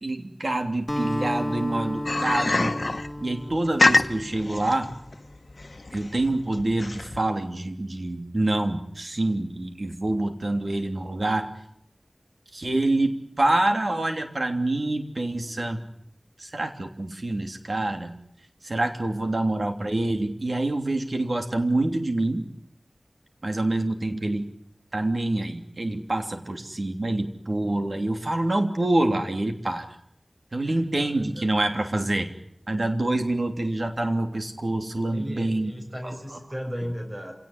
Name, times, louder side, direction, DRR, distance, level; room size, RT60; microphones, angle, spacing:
voice 1, 0.0-2.7 3.2-4.9 5.9-11.5 12.5-15.8 16.4-18.1 18.6-22.5 23.4-24.5 24.9-29.9 30.5-32.3 32.7-35.7 36.0-36.4, right 2 dB, 65° right, 5 dB, 3.1 m, -26 dB
Acoustic guitar, 0.9-5.4, left 1 dB, 5° left, 1.6 m, -33 dB
sound 1, 2.1-7.2, left 2 dB, 65° left, 1.2 m, -25 dB
voice 2, 19.1-19.5 26.5-26.6 30.6-31.5 35.1-37.3, equal, 35° right, 2 dB, 7.1 m, -37 dB
27.5 x 18.0 x 9.9 m, 0.74 s
wide cardioid pair, 45°, 0 cm